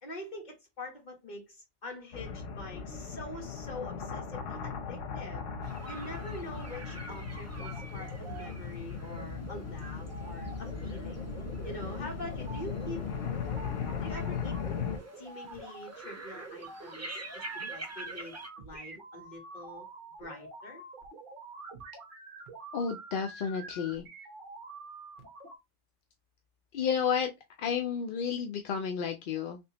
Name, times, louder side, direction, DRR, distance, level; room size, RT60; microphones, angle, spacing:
voice 1, 0.0-11.3 11.6-13.1 14.0-14.6 15.2-19.9 20.2-20.8, left 1 dB, 40° left, 1.3 m, -45 dB
sound 1, 2.1-15.0, left 6 dB, 85° left, 1.0 m, -38 dB
sound 2, 5.6-18.5, right 2 dB, 25° right, 0.4 m, -48 dB
sound 3, 6.6-25.6, right 3 dB, 45° right, 1.0 m, -47 dB
voice 2, 22.7-24.0 26.7-27.3 27.6-29.6, left 7 dB, 60° left, 0.6 m, -31 dB
3.4 x 2.9 x 2.8 m
omnidirectional pair, 1.2 m